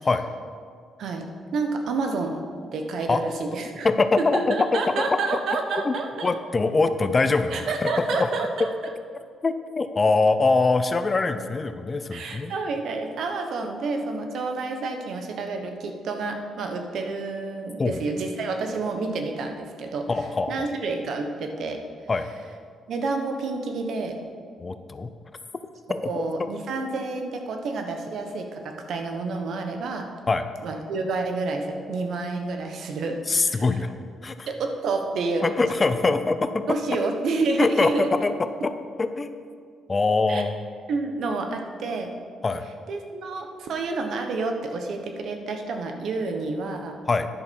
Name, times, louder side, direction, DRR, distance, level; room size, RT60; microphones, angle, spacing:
voice 1, 1.0-2.4 2.7-3.9 4.2-6.3 7.5-8.7 12.1-20.1 20.5-21.8 22.9-24.2 26.0-30.1 30.6-33.6 34.5-35.4 36.7-38.1 40.3-40.5 40.9-42.1 42.9-47.0, right 3 dB, 70° right, 4 dB, 1.2 m, -29 dB
voice 2, 3.8-5.0 5.3-5.4 5.8-6.0 6.2-8.3 9.4-12.5 17.8-18.0 20.1-20.7 22.1-22.3 24.6-25.1 25.9-26.0 30.3-30.4 33.3-33.9 34.2-34.5 35.4-36.6 37.6-38.7 39.0-39.3 39.9-40.5 42.4-42.7 47.1-47.3, left 3 dB, 30° left, 10 dB, 0.6 m, -23 dB
10.5 x 6.4 x 5.4 m, 2.1 s
cardioid pair, 90°, 0 cm